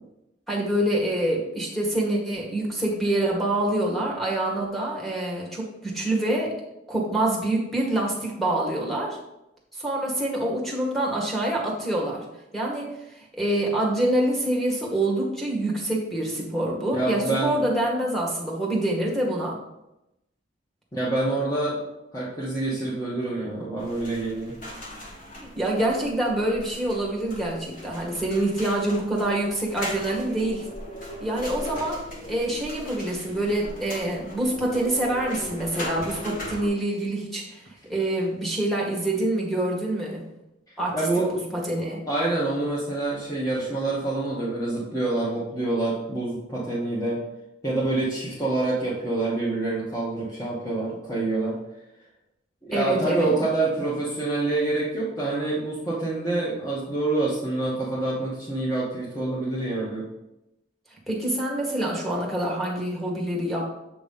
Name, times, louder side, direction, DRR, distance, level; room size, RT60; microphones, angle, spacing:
voice 1, 0.5-6.5 6.9-9.2 9.7-12.2 12.5-12.9 13.3-19.6 25.4-30.7 31.2-32.0 32.3-37.6 37.9-40.2 40.8-41.0 41.5-42.0 52.7-53.3 61.1-63.7, right 1 dB, ahead, -3 dB, 1.4 m, -26 dB
voice 2, 16.9-17.6 20.9-21.8 22.1-24.5 40.9-41.3 42.1-47.2 47.6-51.5 52.6-60.0, right 2 dB, 15° left, -8 dB, 1.1 m, -26 dB
sound 1, 23.8-36.7, left 1 dB, 40° left, 1.3 m, -39 dB
7.4 x 3.1 x 5.4 m, 0.90 s
head